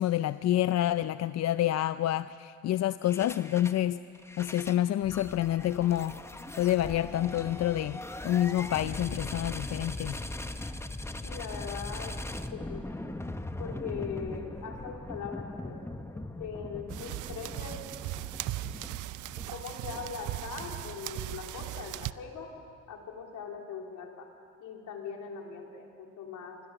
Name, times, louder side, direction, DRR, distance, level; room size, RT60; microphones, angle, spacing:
voice 1, 0.0-4.0 4.4-6.2 6.5-8.0 8.2-10.2, left 12 dB, 60° left, 13 dB, 0.5 m, -28 dB
sound 1, 3.0-3.8 4.2-21.1, left 1 dB, 10° left, 1.0 m, -40 dB
voice 2, 11.2-12.1 12.5-12.8 13.6-15.8 16.1-17.8 19.5-22.5 22.9-24.3 24.6-26.6, left 6 dB, 80° left, 1 dB, 3.3 m, -40 dB
sound 2, 16.9-22.1, right 15 dB, 80° right, 0.6 m, -38 dB
26.0 x 20.5 x 7.0 m, 2.4 s
cardioid pair, 90°, 30 cm